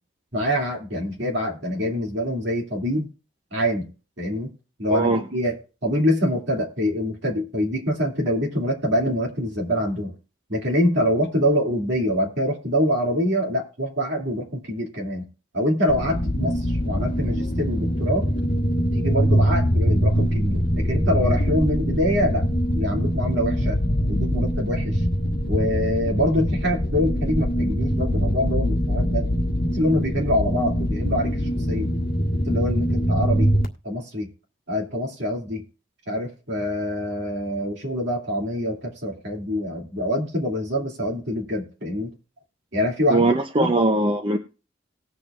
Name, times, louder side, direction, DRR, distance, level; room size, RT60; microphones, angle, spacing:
voice 1, 0.3-3.1 3.5-3.9 4.2-4.5 4.8-5.5 5.8-10.1 10.5-15.2 15.5-18.3 18.9-22.5 22.7-23.8 24.1-25.0 25.5-29.3 29.7-31.4 31.7-31.9 32.5-33.5 33.8-34.3 34.7-35.6 36.1-42.1 42.7-43.2 43.5-43.7, equal, 60° right, 0 dB, 2.6 m, -25 dB
voice 2, 4.9-5.2 43.1-44.4, right 2 dB, 25° right, 4 dB, 0.6 m, -20 dB
sound 1, 15.9-33.7, equal, 55° left, 1.6 m, -23 dB
19.0 x 7.0 x 2.5 m, 0.34 s
head